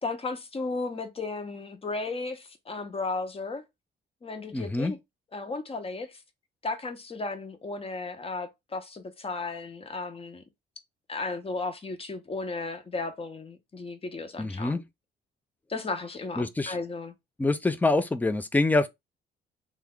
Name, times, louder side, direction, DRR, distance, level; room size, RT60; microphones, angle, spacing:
voice 1, 0.0-3.6 4.2-5.0 5.3-6.2 6.6-10.4 11.1-14.8 15.7-17.2, left 3 dB, 30° left, 0.8 m, -34 dB
voice 2, 4.5-4.9 14.4-14.8 16.4-16.7 17.4-18.9, left 2 dB, 10° left, 0.4 m, -25 dB
3.1 x 2.3 x 3.6 m
cardioid pair, 90°, 20 cm